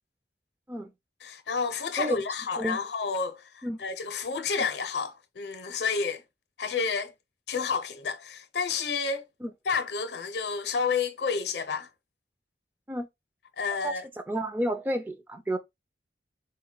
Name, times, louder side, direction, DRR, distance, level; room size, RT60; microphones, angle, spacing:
voice 1, 1.2-6.2 6.6-7.1 7.5-9.2 9.7-11.9 13.6-14.1, left 5 dB, 70° left, 0.6 m, -30 dB
voice 2, 14.3-15.6, right 1 dB, 10° right, 0.3 m, -30 dB
3.9 x 2.2 x 3.7 m
head